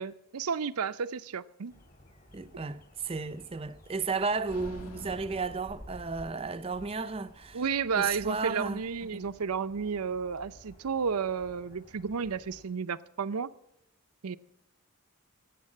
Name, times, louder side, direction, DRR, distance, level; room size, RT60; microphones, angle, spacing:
voice 1, 0.0-1.7 7.5-13.5 14.2-14.4, right 6 dB, 85° right, 0.6 m, -32 dB
sound 1, 1.7-12.6, equal, 40° left, 2.7 m, -54 dB
voice 2, 2.3-7.6 8.0-8.8 9.1-9.2, right 4 dB, 25° right, 0.5 m, -34 dB
sound 2, 4.5-6.6, equal, 75° left, 1.9 m, -47 dB
17.0 x 8.0 x 7.5 m
head